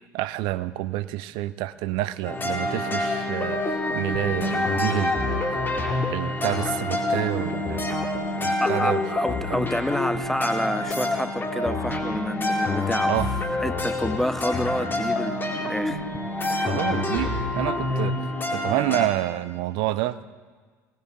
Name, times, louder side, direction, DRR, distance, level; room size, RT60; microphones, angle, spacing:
voice 1, 0.0-5.6 6.1-7.9 8.3-9.0 9.5-9.6 13.0-13.3 16.6-18.2 18.5-20.2, right 16 dB, 60° right, 0.6 m, -28 dB
sound 1, 2.2-19.1, left 2 dB, 20° left, 2.6 m, -27 dB
voice 2, 8.6-13.1 13.6-16.1 16.4-16.7, equal, 5° left, 0.5 m, -29 dB
19.0 x 18.0 x 4.0 m
figure-of-eight pair, 65°, 9 cm